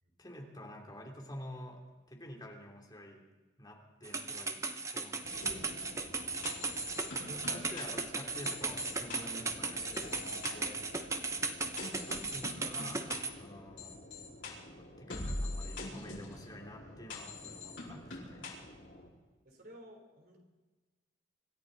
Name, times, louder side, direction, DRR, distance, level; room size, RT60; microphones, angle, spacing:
voice 1, 0.2-1.8 2.1-3.2 3.6-4.6 4.9-5.1 5.4-5.8 7.1-10.8 12.1-14.0 15.0-18.5, equal, 20° left, 0 dB, 2.8 m, -49 dB
sound 1, 4.0-13.3, right 4 dB, 15° right, 0.8 m, -37 dB
sound 2, 5.2-19.1, left 2 dB, 70° left, 4.6 m, -45 dB
voice 2, 7.1-7.8 19.5-20.4, equal, 50° right, 3 dB, 3.3 m, -54 dB
sound 3, 10.0-13.1, right 1 dB, 70° right, 3.3 m, -57 dB
26.0 x 13.5 x 4.0 m, 1.2 s
head